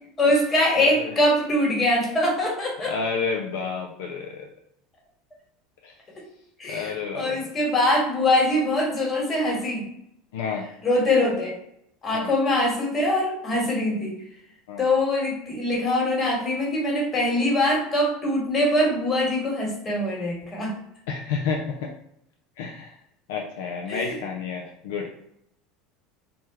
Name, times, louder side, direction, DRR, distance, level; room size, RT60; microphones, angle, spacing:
voice 1, 0.2-2.9 6.6-9.9 10.8-11.5 12.0-14.2 14.8-20.7 23.9-24.2, left 1 dB, 35° left, -1 dB, 1.4 m, -23 dB
voice 2, 0.8-1.1 2.9-4.5 5.8-5.9 6.7-7.4 10.3-10.7 12.1-12.3 14.7-14.8 21.1-21.9 22.6-23.0 23.3-25.1, left 5 dB, 75° left, 0 dB, 0.3 m, -30 dB
3.3 x 2.1 x 2.9 m, 0.74 s
hypercardioid pair, 80°, 0 cm